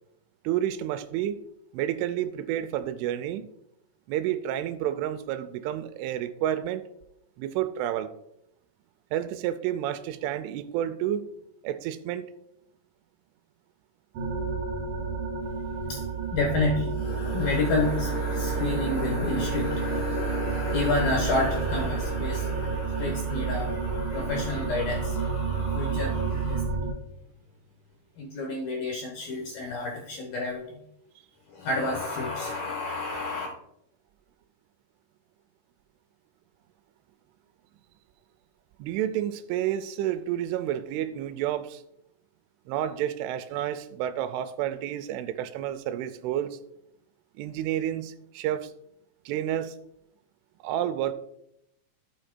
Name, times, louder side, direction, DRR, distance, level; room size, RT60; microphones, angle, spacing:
voice 1, 0.4-1.4 1.7-3.5 4.1-6.9 7.4-8.1 9.1-11.3 11.6-12.3 38.8-41.8 42.7-46.6 47.4-48.7 49.3-49.8 50.6-51.1, right 11 dB, 90° right, 3.1 m, -30 dB
sound 1, 14.1-26.9, right 6 dB, 60° right, 2.7 m, -30 dB
voice 2, 15.9-26.7 28.2-30.8 31.5-33.5, left 3 dB, 70° left, 2.3 m, -30 dB
13.0 x 8.7 x 2.2 m
omnidirectional pair, 5.5 m